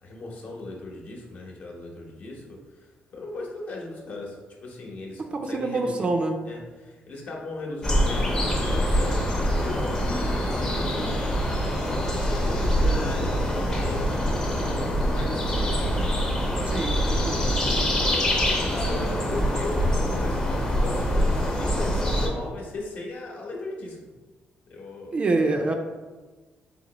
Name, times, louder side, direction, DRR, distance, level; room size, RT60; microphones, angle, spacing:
voice 1, 0.0-6.1 6.4-9.2 9.5-11.4 11.9-15.9 17.6-24.0 24.7-25.2, left 2 dB, 50° left, -1 dB, 0.9 m, -37 dB
voice 2, 5.3-6.4 16.7-17.6 25.1-25.7, right 2 dB, 30° right, 4 dB, 0.4 m, -26 dB
sound 1, 7.8-22.3, equal, 20° left, 0.7 m, -24 dB
4.2 x 2.9 x 4.0 m, 1.3 s
cardioid pair, 150°, 4 cm